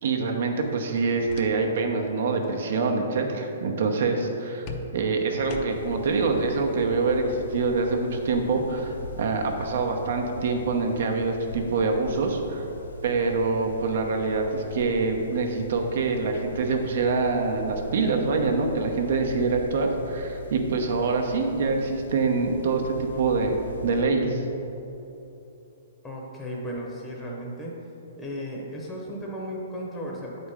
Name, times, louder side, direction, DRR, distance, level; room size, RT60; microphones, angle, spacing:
voice 1, 0.0-4.7 4.9-12.6 13.0-23.6 23.8-24.4, right 4 dB, 60° right, 3 dB, 0.9 m, -25 dB
sound 1, 0.9-1.9 2.2-2.6 4.7-6.1, left 4 dB, 30° left, 0.5 m, -42 dB
sound 2, 5.7-24.0, left 1 dB, 85° left, 0.7 m, -41 dB
voice 2, 26.0-27.8 28.2-30.5, equal, 5° left, -3 dB, 0.8 m, -35 dB
8.3 x 4.3 x 5.0 m, 3.0 s
hypercardioid pair, 160°, 0 cm